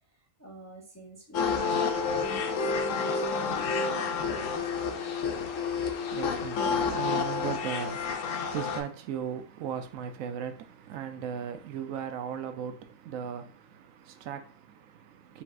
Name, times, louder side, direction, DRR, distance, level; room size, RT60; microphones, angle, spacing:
voice 1, 0.4-3.2 3.4-5.2, left 1 dB, 20° left, 0.5 m, -48 dB
sound 1, 1.3-8.8, left 5 dB, 75° left, 1.0 m, -29 dB
voice 2, 5.6-15.4, right 8 dB, 85° right, 1.0 m, -38 dB
4.2 x 3.9 x 2.5 m
omnidirectional pair, 1.4 m